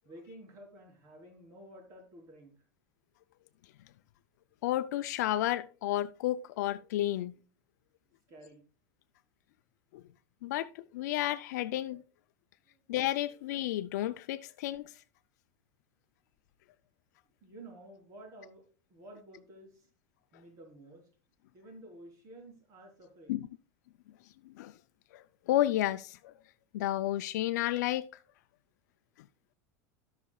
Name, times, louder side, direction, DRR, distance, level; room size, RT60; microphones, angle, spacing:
voice 1, 0.1-2.5 8.3-8.6 12.7-12.8 17.4-18.6 18.9-19.9 20.3-21.1 21.5-23.5, right 1 dB, 40° right, 3.7 m, -52 dB
voice 2, 4.6-7.3 10.4-12.0 12.9-14.9 23.3-23.5 24.5-24.7 25.1-26.3 26.7-28.1, left 14 dB, 85° left, 0.4 m, -31 dB
17.0 x 5.9 x 2.3 m
supercardioid pair, 140°, 9 cm